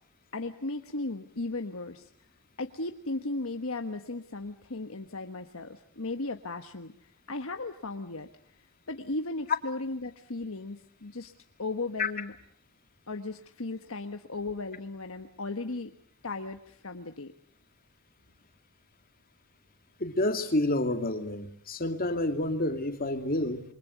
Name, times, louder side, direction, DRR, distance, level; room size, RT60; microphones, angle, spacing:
voice 1, 0.3-2.1 2.6-6.9 7.3-8.3 8.9-11.3 11.6-12.3 13.1-15.9 16.2-17.3, left 2 dB, 65° left, 5 dB, 1.3 m, -36 dB
voice 2, 20.0-23.6, left 1 dB, 40° left, 6 dB, 2.5 m, -29 dB
28.5 x 24.0 x 8.2 m, 0.65 s
head